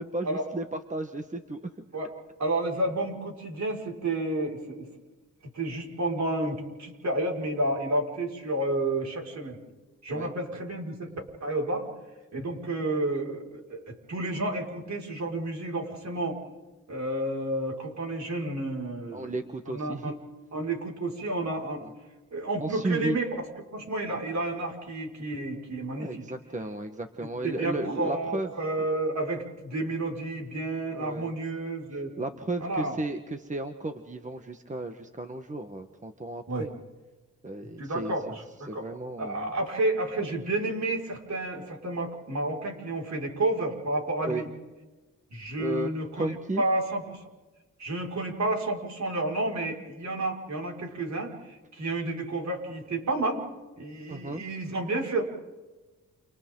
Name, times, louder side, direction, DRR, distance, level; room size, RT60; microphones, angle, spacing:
voice 1, 0.0-1.7 10.1-10.3 19.1-20.1 21.8-21.9 22.6-23.2 24.1-24.2 25.9-28.5 30.9-31.3 32.2-36.7 37.4-38.4 38.7-39.5 44.2-44.5 45.6-45.9 46.2-46.6 54.1-54.4, right 1 dB, 25° right, 6 dB, 1.5 m, -34 dB
voice 2, 2.4-4.9 5.5-9.6 10.0-11.1 11.4-11.9 12.3-16.4 16.9-19.3 19.7-20.1 20.5-21.9 22.3-23.3 23.7-26.3 27.4-32.1 32.6-33.0 36.5-36.7 37.8-38.8 39.2-44.5 45.3-47.2 47.8-53.4 53.8-55.2, right 2 dB, 55° right, -1 dB, 5.9 m, -31 dB
30.0 x 29.5 x 4.0 m, 1.2 s
cardioid pair, 80°, 32 cm